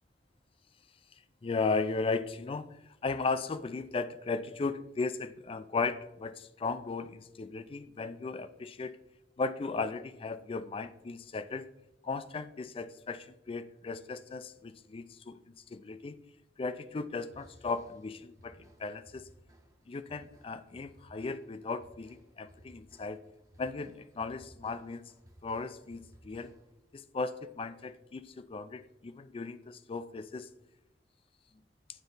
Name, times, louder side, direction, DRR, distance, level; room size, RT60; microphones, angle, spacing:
voice 1, 1.4-9.0 9.4-11.7 12.0-16.2 16.6-19.3 19.9-23.2 23.6-25.0 25.4-26.5 26.9-30.5, left 4 dB, 30° left, 13 dB, 0.3 m, -36 dB
sound 1, 17.3-26.8, right 1 dB, 20° right, 0.7 m, -60 dB
9.1 x 4.0 x 4.0 m, 0.90 s
head